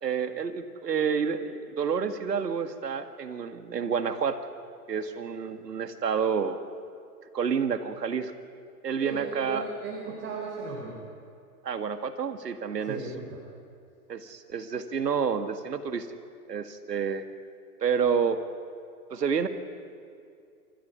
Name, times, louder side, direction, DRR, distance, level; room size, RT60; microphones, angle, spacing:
voice 1, 0.0-4.4 4.9-6.6 7.3-8.3 8.8-9.7 11.6-13.0 14.1-16.1 16.5-17.2 17.8-18.4 19.1-19.5, right 6 dB, 90° right, 9 dB, 2.0 m, -29 dB
voice 2, 9.0-11.0 12.8-13.1, right 4 dB, 25° right, -2 dB, 4.5 m, -36 dB
28.0 x 14.0 x 9.5 m, 2.4 s
hypercardioid pair, 130°, 47 cm